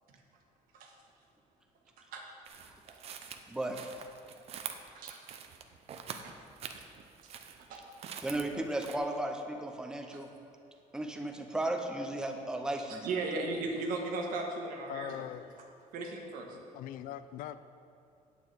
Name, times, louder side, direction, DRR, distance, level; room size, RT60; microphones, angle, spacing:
sound 1, 2.5-9.0, right 7 dB, 45° right, 0.6 m, -45 dB
voice 1, 3.5-3.9 8.2-10.3 10.9-13.0, right 1 dB, 5° right, 3 dB, 0.7 m, -35 dB
voice 2, 4.7-5.2 6.2-6.3 7.2-7.3 7.6-7.8 10.1-10.2 12.9-15.3 15.9-16.6, right 3 dB, 80° right, 2 dB, 1.4 m, -37 dB
voice 3, 14.9-15.5 16.7-17.6, left 12 dB, 80° left, 13 dB, 0.5 m, -41 dB
9.2 x 8.2 x 4.7 m, 2.7 s
cardioid pair, 170°, 14 cm